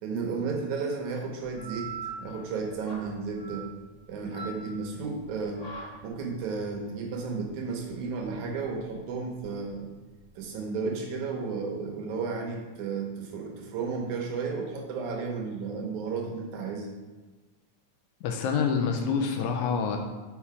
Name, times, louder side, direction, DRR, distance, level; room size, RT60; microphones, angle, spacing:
voice 1, 0.0-3.7 4.1-9.9 10.4-16.9, right 4 dB, 75° right, 1 dB, 2.2 m, -33 dB
sound 1, 1.4-10.6, right 4 dB, 20° left, 1.7 m, -44 dB
voice 2, 18.2-20.0, left 6 dB, 80° left, 3 dB, 1.9 m, -27 dB
5.6 x 4.3 x 4.8 m, 1.3 s
omnidirectional pair, 3.6 m